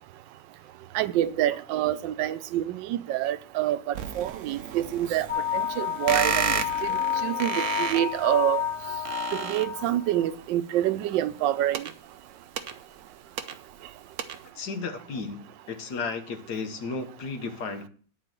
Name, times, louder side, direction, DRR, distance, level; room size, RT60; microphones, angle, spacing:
voice 1, 0.9-5.3 5.5-6.5 6.8-8.6 9.3-11.8, right 12 dB, 90° right, 1.3 m, -27 dB
sound 1, 3.9-10.2 11.4-13.9 14.2-14.5, right 8 dB, 55° right, 0.9 m, -33 dB
sound 2, 5.3-10.2, left 9 dB, 15° left, 1.5 m, -30 dB
voice 2, 14.6-17.9, left 4 dB, 65° left, 1.6 m, -34 dB
9.7 x 4.5 x 7.4 m
omnidirectional pair, 1.9 m